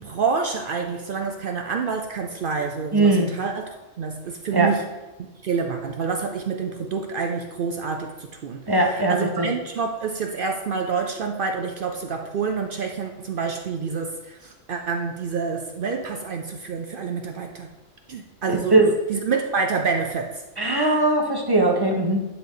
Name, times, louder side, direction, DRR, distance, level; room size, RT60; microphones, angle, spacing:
voice 1, 0.0-4.9 5.2-8.1 8.4-17.7 18.1-20.4, right 5 dB, 60° right, 3 dB, 0.6 m, -28 dB
voice 2, 2.9-3.3 4.5-4.7 8.7-9.5 18.7-18.9 20.6-22.3, right 2 dB, 20° right, 1 dB, 0.8 m, -19 dB
10.0 x 3.5 x 3.7 m, 1.1 s
omnidirectional pair, 1.3 m